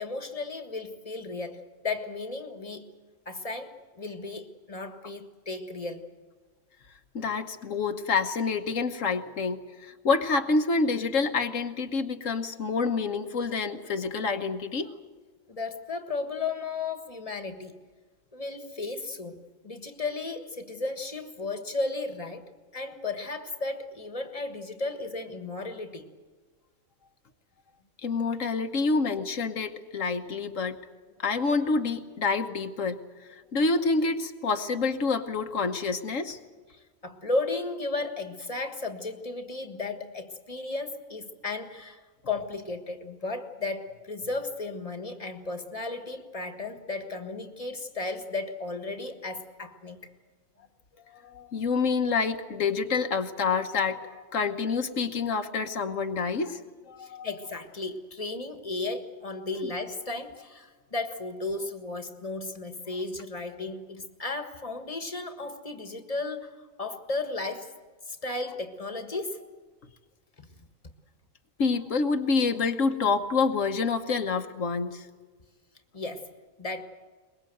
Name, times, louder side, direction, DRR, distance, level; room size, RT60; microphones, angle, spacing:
voice 1, 0.0-2.9 3.2-6.1 15.5-17.8 18.3-22.4 22.7-26.1 36.7-50.1 57.0-67.7 68.1-69.5 70.4-70.7 75.9-76.3 76.6-76.8, left 3 dB, 25° left, 7 dB, 1.6 m, -34 dB
voice 2, 7.1-14.9 28.0-30.8 31.2-33.0 33.3-36.4 51.1-56.6 56.9-57.3 59.6-59.7 71.6-75.1, left 4 dB, 75° left, 7 dB, 1.5 m, -27 dB
23.0 x 21.5 x 7.9 m, 1.5 s
omnidirectional pair, 1.4 m